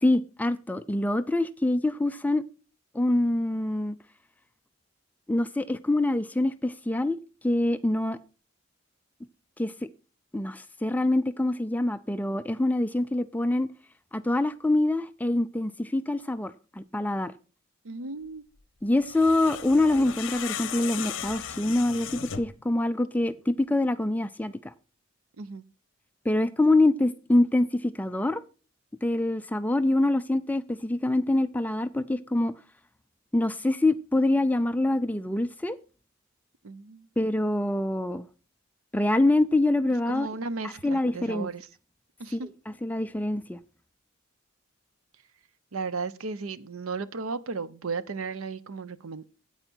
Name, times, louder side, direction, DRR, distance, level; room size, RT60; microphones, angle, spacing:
voice 1, 0.0-2.4 2.9-3.9 5.3-7.2 7.4-8.2 9.6-9.7 10.3-13.7 14.1-17.3 18.8-24.7 26.2-28.4 29.0-32.5 33.3-35.8 37.2-38.3 38.9-40.3 40.8-41.5 42.3-42.4 42.7-43.6, left 2 dB, 10° left, 0.4 m, -25 dB
voice 2, 17.8-18.5 25.4-25.6 36.6-37.1 40.1-41.7 42.2-42.5 45.7-49.2, right 4 dB, 90° right, 0.7 m, -35 dB
sound 1, 19.0-22.6, left 8 dB, 60° left, 0.8 m, -36 dB
9.0 x 8.9 x 4.5 m
head